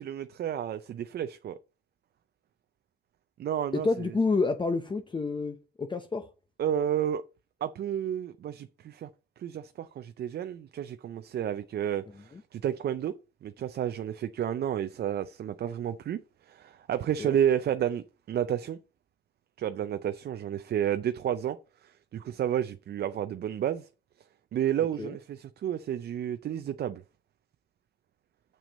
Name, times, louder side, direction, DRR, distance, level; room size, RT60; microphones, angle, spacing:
voice 1, 0.0-1.6 3.4-4.1 6.6-7.2 7.6-9.1 9.4-13.1 13.4-18.8 19.6-23.9 24.5-27.0, right 10 dB, 55° right, 0.5 m, -31 dB
voice 2, 3.8-6.3 12.3-12.4 17.2-17.3 25.0-25.1, left 3 dB, 25° left, 0.7 m, -29 dB
6.9 x 6.2 x 4.1 m
cardioid pair, 90°, 20 cm